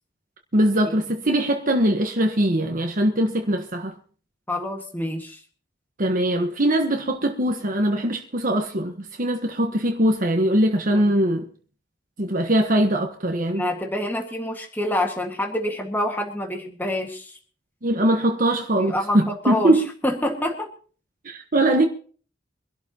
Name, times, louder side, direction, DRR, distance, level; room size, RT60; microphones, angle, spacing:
voice 1, 0.5-3.9 6.0-11.5 12.2-13.6 17.8-19.8 21.2-21.9, right 1 dB, 45° right, 1.3 m, -21 dB
voice 2, 4.5-5.4 10.9-11.1 13.5-17.4 18.8-20.7, left 1 dB, 10° left, 1.8 m, -27 dB
24.5 x 12.0 x 3.0 m
head